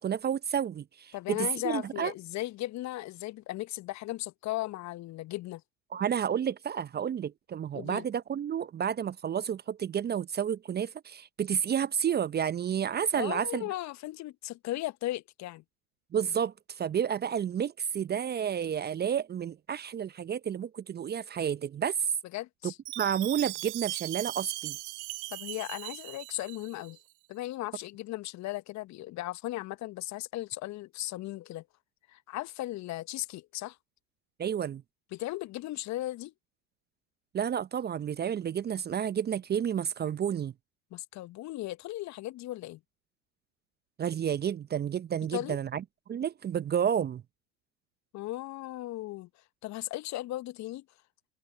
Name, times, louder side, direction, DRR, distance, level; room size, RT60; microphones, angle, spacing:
voice 1, 0.0-2.1 5.9-13.6 16.1-22.0 22.6-24.8 34.4-34.8 37.3-40.5 44.0-45.8 46.1-47.2, right 8 dB, 25° right, 0.9 m, -31 dB
voice 2, 1.1-5.6 7.7-8.1 13.1-15.6 22.3-22.8 25.3-27.0 27.3-31.6 32.1-33.8 35.1-36.3 40.9-42.8 45.3-45.6 48.1-49.3 49.6-50.8, left 16 dB, 40° left, 1.4 m, -37 dB
Chime, 22.9-27.0, right 25 dB, 55° right, 0.7 m, -39 dB
open air
figure-of-eight pair, 75°, 43 cm